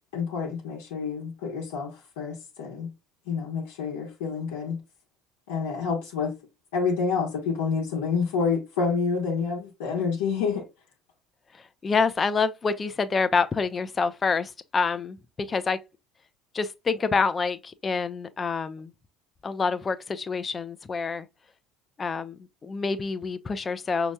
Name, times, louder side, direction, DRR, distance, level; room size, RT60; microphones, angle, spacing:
voice 1, 0.1-2.9 3.3-4.8 5.5-6.3 6.7-10.7, left 5 dB, 70° left, 1.1 m, -28 dB
voice 2, 11.5-15.8 16.5-18.9 19.4-21.3 22.0-24.1, left 4 dB, 30° left, 0.6 m, -27 dB
6.2 x 2.9 x 2.3 m
figure-of-eight pair, 65°, 0 cm